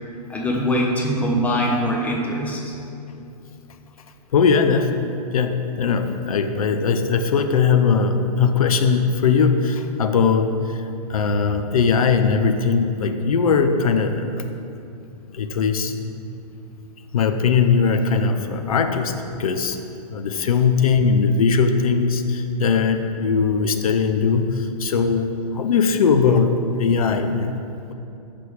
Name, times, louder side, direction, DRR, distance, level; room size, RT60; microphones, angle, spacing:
voice 1, 0.3-2.7, equal, 5° left, -1 dB, 0.6 m, -22 dB
voice 2, 4.3-5.1 5.3-14.5 15.3-16.1 17.1-19.1 19.4-19.8 20.1-27.9, left 5 dB, 65° left, 8 dB, 0.5 m, -20 dB
5.8 x 5.0 x 3.5 m, 2.7 s
figure-of-eight pair, 115°, 20 cm